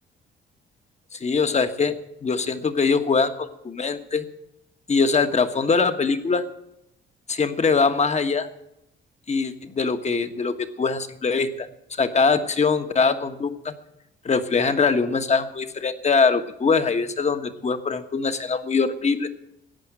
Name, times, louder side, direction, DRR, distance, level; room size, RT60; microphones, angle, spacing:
voice 1, 1.1-1.9 2.2-4.3 4.9-6.4 7.3-8.5 9.3-13.7 14.2-19.3, left 4 dB, 35° left, 9 dB, 1.4 m, -22 dB
14.5 x 9.0 x 8.9 m, 0.82 s
cardioid pair, 90°, 20 cm